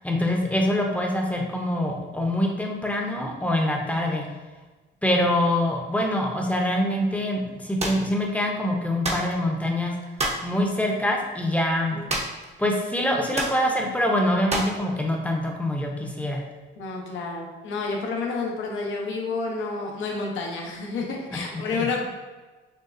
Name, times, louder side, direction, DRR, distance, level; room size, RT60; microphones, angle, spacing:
voice 1, 0.0-4.2 5.0-9.9 10.4-12.0 12.6-16.4, left 1 dB, 5° left, 0 dB, 0.7 m, -24 dB
sound 1, 7.8-8.0 9.0-9.3 10.2-10.5 12.1-12.5 12.7-12.8 13.3-13.6 14.5-14.8, right 1 dB, 35° right, 0.8 m, -28 dB
voice 2, 16.8-22.1, left 4 dB, 80° left, 0 dB, 0.9 m, -30 dB
6.5 x 2.3 x 2.6 m, 1.3 s
cardioid pair, 90°, 20 cm